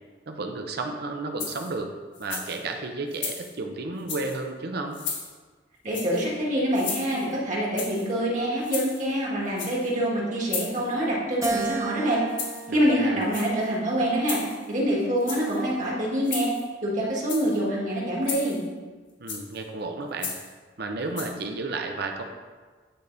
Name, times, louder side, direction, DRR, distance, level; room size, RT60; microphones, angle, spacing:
voice 1, 0.3-1.9 2.2-5.0 12.7-13.2 19.2-20.3 20.8-22.2, right 3 dB, 60° right, 4 dB, 0.6 m, -32 dB
sound 1, 1.4-1.8 2.1-2.6 3.1-3.5 4.0-4.4 4.9-5.3 5.9-6.3 6.7-7.3 7.8-8.1 8.6-9.1 9.5-9.9 10.5-10.9 11.4-11.7 12.3-12.7 13.2-13.7 14.2-14.7 15.2-15.6 16.2-16.7 17.2-17.6 18.2-18.7 19.3-19.6 20.2-20.5 21.2-21.3, left 5 dB, 85° left, 1.4 m, -35 dB
voice 2, 5.8-12.2 12.7-14.4 14.7-16.5 16.8-18.6, equal, 45° right, -4 dB, 1.7 m, -25 dB
Keyboard (musical), 11.4-13.9 14.5-15.7, right 4 dB, 20° right, 0.6 m, -34 dB
9.0 x 3.5 x 3.9 m, 1.4 s
head